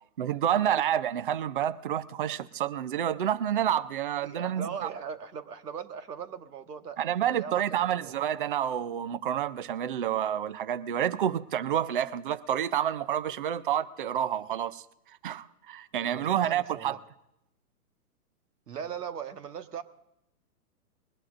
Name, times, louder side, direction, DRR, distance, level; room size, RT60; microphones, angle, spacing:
voice 1, 0.2-4.9 7.0-14.8 15.2-17.0, right 10 dB, 35° right, 0.4 m, -29 dB
voice 2, 4.2-7.0 7.3-7.6 7.9-8.1 16.0-17.0 18.7-19.8, right 7 dB, 85° right, 1.5 m, -39 dB
21.5 x 19.5 x 2.5 m
hypercardioid pair, 150°, 46 cm